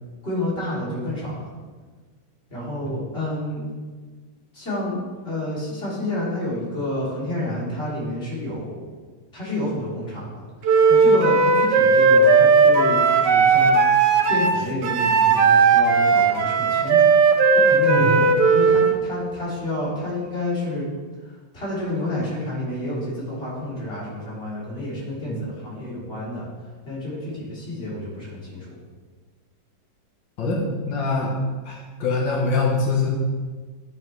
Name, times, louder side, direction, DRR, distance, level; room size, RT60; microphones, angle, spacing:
voice 1, 0.2-1.5 2.5-3.7 4.5-5.0 5.2-8.8 9.3-10.4 10.9-13.8 14.3-17.1 17.5-20.9 21.2-26.5 26.9-28.7, left 1 dB, 30° left, -8 dB, 3.5 m, -29 dB
Wind instrument woodwind instrument, 10.6-19.0, right 4 dB, 70° right, 1.4 m, -16 dB
voice 2, 30.4-31.3 31.7-33.1, left 3 dB, 80° left, -1 dB, 2.0 m, -24 dB
10.5 x 7.6 x 3.4 m, 1.4 s
omnidirectional pair, 2.0 m